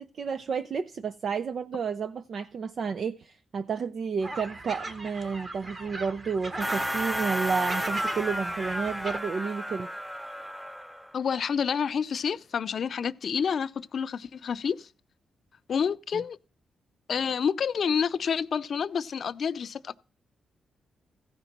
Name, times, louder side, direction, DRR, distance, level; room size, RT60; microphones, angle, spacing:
voice 1, 0.0-9.9, right 5 dB, 55° right, 0.5 m, -31 dB
sound 1, 4.2-9.2, right 2 dB, 35° right, 1.7 m, -39 dB
sound 2, 6.6-11.1, equal, 5° right, 0.6 m, -32 dB
voice 2, 11.1-14.9 15.7-16.4 17.1-20.0, left 7 dB, 60° left, 0.5 m, -28 dB
15.0 x 5.2 x 5.9 m
cardioid pair, 90°, 0 cm